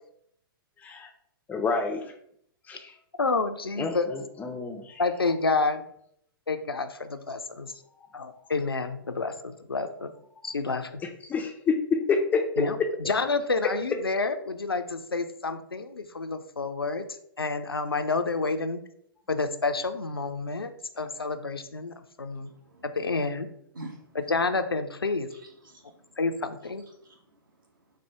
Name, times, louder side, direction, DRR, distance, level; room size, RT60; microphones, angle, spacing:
voice 1, 0.8-1.1 1.5-2.1 2.7-3.0 3.8-5.0 11.2-12.4, left 4 dB, 15° left, 4 dB, 0.4 m, -28 dB
voice 2, 3.2-4.1 5.0-5.8 6.5-7.7 8.1-10.1 10.4-11.0 12.6-12.8 13.1-17.1 17.4-18.8 19.3-20.7 21.0-22.5 22.8-23.5 24.3-25.3 26.2-26.8, left 3 dB, 85° left, 8 dB, 0.4 m, -29 dB
voice 3, 22.3-22.9 23.7-24.2 25.3-26.1 26.6-26.7 27.0-27.7, right 2 dB, 60° right, 0 dB, 1.3 m, -47 dB
4.2 x 2.2 x 4.6 m, 0.70 s
figure-of-eight pair, 115°, 12 cm